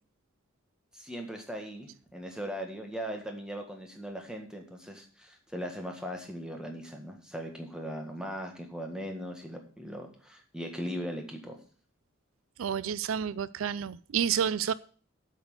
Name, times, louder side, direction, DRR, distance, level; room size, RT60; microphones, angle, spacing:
voice 1, 0.9-11.6, equal, 5° right, 3 dB, 1.6 m, -39 dB
voice 2, 12.6-14.7, right 8 dB, 75° right, 18 dB, 0.4 m, -30 dB
8.0 x 6.2 x 7.9 m, 0.43 s
head